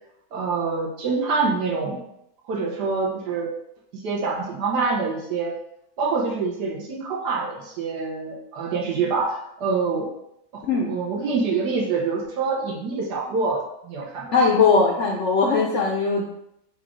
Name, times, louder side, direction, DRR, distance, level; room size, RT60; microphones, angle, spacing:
voice 1, 0.3-2.0 2.5-3.5 3.9-5.5 6.0-10.1 10.5-10.6 10.9-14.3, right 4 dB, 65° right, -3 dB, 1.5 m, -26 dB
voice 2, 14.3-16.2, left 4 dB, 90° left, 0 dB, 0.6 m, -19 dB
4.8 x 2.8 x 3.7 m, 0.79 s
omnidirectional pair, 2.0 m